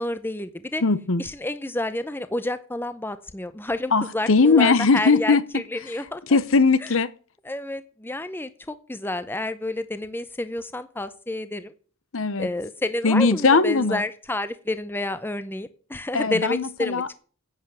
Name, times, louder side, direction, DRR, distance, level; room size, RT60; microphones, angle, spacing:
voice 1, 0.0-0.8 1.2-6.4 6.8-6.9 7.5-11.7 12.4-17.0, left 1 dB, 10° left, 0.7 m, -30 dB
voice 2, 0.8-1.2 3.9-5.4 6.3-7.1 12.1-12.5 13.0-14.0 16.1-17.1, left 4 dB, 60° left, 0.8 m, -19 dB
10.5 x 8.1 x 7.7 m
head